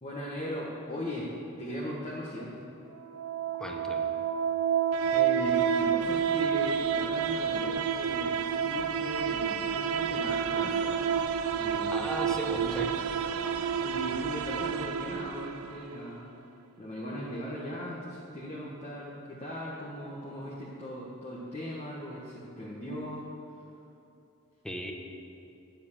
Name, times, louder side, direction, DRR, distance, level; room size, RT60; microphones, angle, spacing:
voice 1, 0.0-2.6 5.1-11.1 11.5-11.9 12.5-12.8 13.8-16.3 16.8-23.3, equal, 30° left, -6 dB, 1.4 m, -39 dB
sound 1, 3.0-16.0, right 7 dB, 75° right, 0.5 m, -29 dB
voice 2, 3.5-4.1 11.9-12.9 24.6-24.9, equal, 5° left, 1 dB, 1.0 m, -36 dB
9.7 x 7.5 x 7.3 m, 2.9 s
head